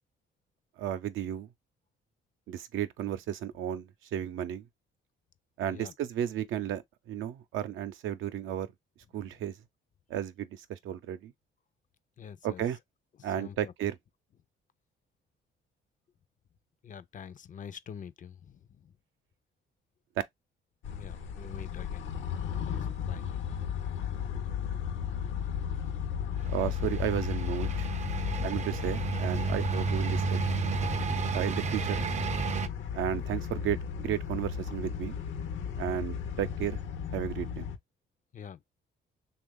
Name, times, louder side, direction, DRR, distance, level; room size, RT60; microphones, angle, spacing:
voice 1, 0.8-1.5 2.5-4.6 5.6-6.8 7.1-8.7 9.1-9.6 10.1-11.3 12.4-12.8 13.2-14.0 26.5-27.9 28.4-30.4 31.3-32.1 32.9-35.2 35.8-36.8 37.1-37.7, right 10 dB, 80° right, 0.6 m, -33 dB
voice 2, 12.2-12.6 13.2-13.7 16.8-18.9 21.0-22.0 22.7-23.2 38.3-38.7, left 7 dB, 40° left, 0.4 m, -46 dB
sound 1, 20.8-37.8, left 8 dB, 75° left, 0.7 m, -35 dB
sound 2, 26.4-32.7, right 5 dB, 35° right, 0.5 m, -32 dB
3.1 x 2.4 x 3.5 m
cardioid pair, 90°, 20 cm